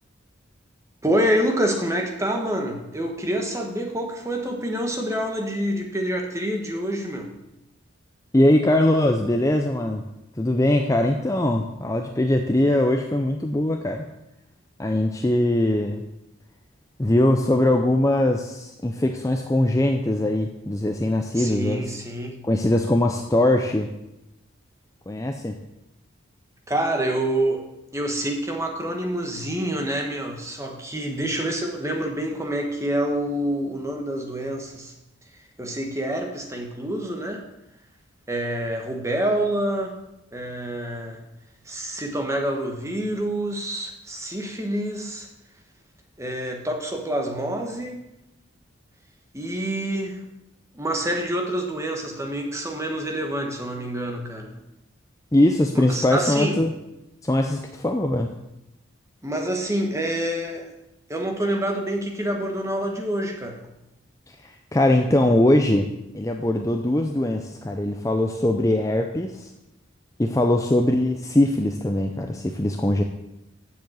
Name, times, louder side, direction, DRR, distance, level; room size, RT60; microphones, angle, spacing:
voice 1, 1.0-7.3 21.3-22.5 26.7-27.7 27.9-34.9 35.6-37.4 38.3-40.0 40.3-41.2 41.6-45.3 46.2-48.1 49.3-50.2 50.7-54.5 55.7-56.6 59.2-60.7 61.1-63.7, right 1 dB, 15° right, 3 dB, 1.2 m, -27 dB
voice 2, 8.3-10.0 10.4-14.1 14.8-16.0 17.0-21.8 22.4-23.9 25.1-25.6 55.3-56.7 57.2-58.3 64.4-69.5 70.2-73.0, left 1 dB, 15° left, 4 dB, 0.5 m, -21 dB
7.4 x 7.1 x 7.8 m, 0.90 s
head